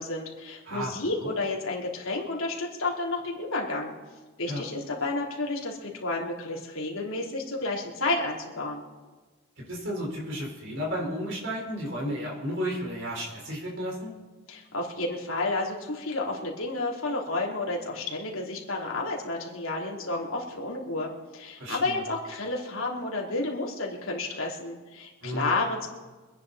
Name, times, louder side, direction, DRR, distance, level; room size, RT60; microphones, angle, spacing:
voice 1, 0.0-3.9 4.4-8.8 14.5-25.9, left 2 dB, 75° left, -2 dB, 3.3 m, -31 dB
voice 2, 9.7-14.1 21.6-22.0 25.2-25.5, equal, 60° right, -2 dB, 4.6 m, -33 dB
26.0 x 10.0 x 4.2 m, 1.3 s
head